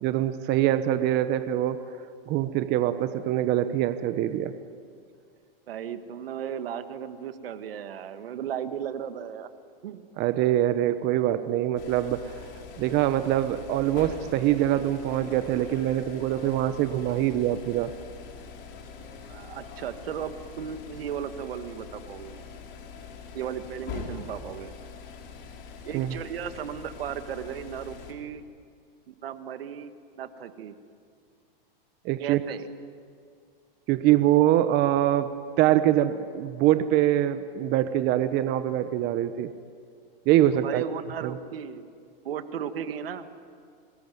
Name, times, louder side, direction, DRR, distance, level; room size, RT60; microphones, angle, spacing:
voice 1, 0.0-1.8 2.3-4.5 10.2-12.3 12.8-17.9 25.9-26.2 32.0-32.4 33.9-39.5 40.3-40.8 41.2-41.3, right 13 dB, 35° right, 11 dB, 1.1 m, -24 dB
voice 2, 5.7-9.5 9.8-10.0 13.4-13.6 19.3-22.5 23.3-24.7 25.8-28.4 29.1-29.9 30.2-30.7 32.2-32.6 40.5-41.9 42.2-43.3, right 8 dB, 80° right, 9 dB, 1.9 m, -35 dB
sound 1, 11.8-28.1, left 5 dB, 40° left, 4.8 m, -43 dB
26.5 x 21.0 x 9.5 m, 2.2 s
hypercardioid pair, 135°, 29 cm